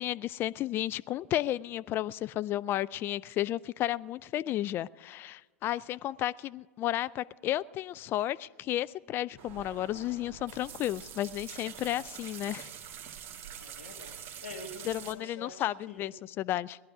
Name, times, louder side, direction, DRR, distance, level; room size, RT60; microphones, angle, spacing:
voice 1, 0.0-12.7 14.8-16.8, left 13 dB, 35° left, 17 dB, 0.3 m, -33 dB
sound 1, 9.4-15.1, right 9 dB, 40° right, 1.4 m, -45 dB
voice 2, 13.6-16.1, left 2 dB, 80° left, 3 dB, 1.7 m, -46 dB
19.5 x 11.0 x 4.9 m, 1.3 s
figure-of-eight pair, 90°, 7 cm